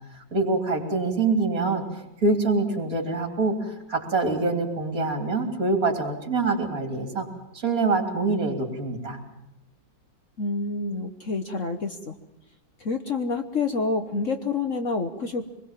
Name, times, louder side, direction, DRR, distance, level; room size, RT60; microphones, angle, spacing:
voice 1, 0.1-7.3 7.5-9.2, right 3 dB, 50° right, 5 dB, 3.7 m, -25 dB
voice 2, 10.4-12.1 12.8-15.5, left 3 dB, 45° left, 7 dB, 1.4 m, -28 dB
25.5 x 21.0 x 7.5 m, 0.93 s
omnidirectional pair, 2.0 m